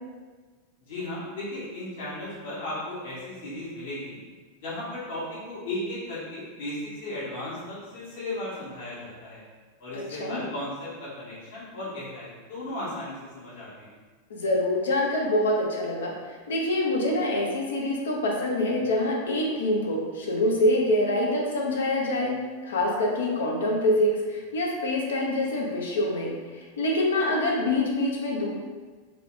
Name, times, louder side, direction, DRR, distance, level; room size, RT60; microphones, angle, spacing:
voice 1, 0.8-4.2 4.6-9.4 9.8-14.0, left 1 dB, 70° left, -8 dB, 1.4 m, -35 dB
voice 2, 9.9-10.4 14.3-28.5, left 1 dB, 85° left, 0 dB, 0.7 m, -25 dB
3.5 x 2.3 x 3.7 m, 1.4 s
hypercardioid pair, 115°, 0 cm